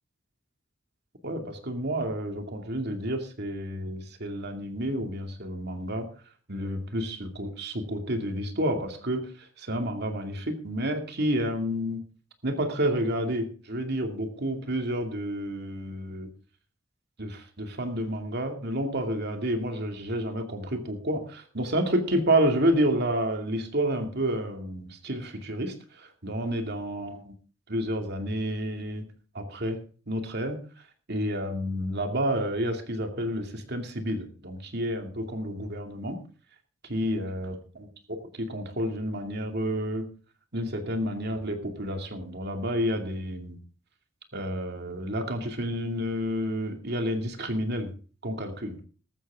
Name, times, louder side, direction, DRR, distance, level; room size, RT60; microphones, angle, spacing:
voice 1, 1.2-6.1 6.5-12.0 12.4-16.3 17.2-27.4 27.7-29.1 29.3-29.8 30.1-30.6 31.1-36.2 36.9-40.1 40.5-43.6 44.3-47.9 48.2-48.8, equal, 55° right, 5 dB, 2.5 m, -30 dB
14.5 x 13.0 x 3.7 m, 0.39 s
head